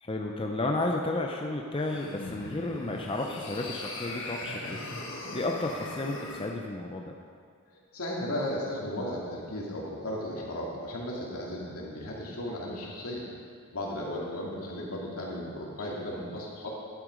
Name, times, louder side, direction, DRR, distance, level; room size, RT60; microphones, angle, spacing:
voice 1, 0.0-5.0 5.3-7.0, left 2 dB, 25° left, 1 dB, 0.6 m, -32 dB
sound 1, 1.8-6.5, left 2 dB, 60° left, 1.2 m, -40 dB
voice 2, 7.9-13.2 13.7-16.7, left 1 dB, 80° left, -4 dB, 2.4 m, -35 dB
11.0 x 7.8 x 5.1 m, 2.1 s
head